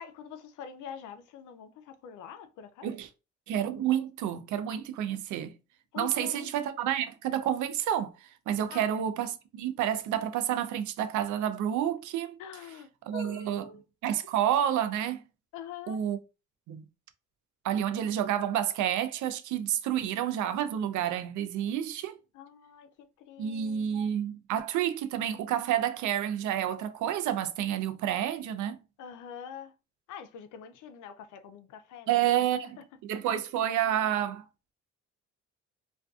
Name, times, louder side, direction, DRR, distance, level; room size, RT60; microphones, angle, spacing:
voice 1, 0.0-2.9 5.9-6.5 8.7-8.9 12.4-13.8 15.5-16.0 22.3-22.9 23.2-24.2 29.0-29.7 30.1-32.1 32.4-32.5, left 8 dB, 80° left, 0.5 m, -45 dB
voice 2, 3.5-5.5 6.0-12.4 13.1-13.6 14.0-15.2 15.9-16.2 16.7-16.8 17.6-22.1 23.4-28.8 32.1-32.8 33.1-34.4, right 10 dB, 75° right, 0.4 m, -29 dB
2.5 x 2.3 x 2.3 m
cardioid pair, 90°, 30 cm